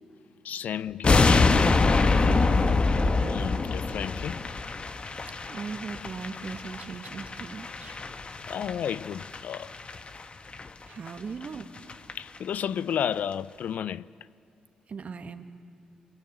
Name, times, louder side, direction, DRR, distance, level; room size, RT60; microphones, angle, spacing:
voice 1, 0.4-1.5 3.3-4.4 8.5-9.7 12.1-14.1, left 9 dB, 65° left, 0.5 m, -32 dB
sound 1, 1.0-10.2 10.5-10.7 11.1-11.2 11.4-11.5 11.8-12.1 12.4-12.5, left 3 dB, 40° left, 1.4 m, -25 dB
voice 2, 2.2-2.8 5.5-8.0 10.9-11.7 14.9-15.4, right 5 dB, 55° right, 2.0 m, -38 dB
27.5 x 22.0 x 9.0 m
hypercardioid pair, 45°, 3 cm